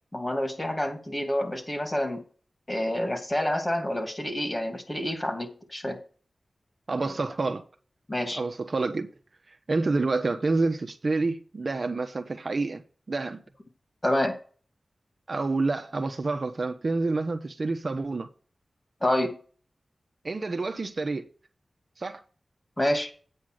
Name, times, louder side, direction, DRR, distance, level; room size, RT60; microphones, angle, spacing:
voice 1, 0.1-2.2 2.7-6.0 7.0-7.1 8.1-8.4 14.0-14.4 19.0-19.4 22.8-23.1, left 1 dB, 25° left, 2.8 m, -28 dB
voice 2, 6.9-7.6 8.3-9.1 9.5-13.4 15.3-18.3 20.2-21.3 22.0-22.2, right 3 dB, 60° right, 1.1 m, -28 dB
8.9 x 5.7 x 6.6 m
cardioid pair, 45°, 0 cm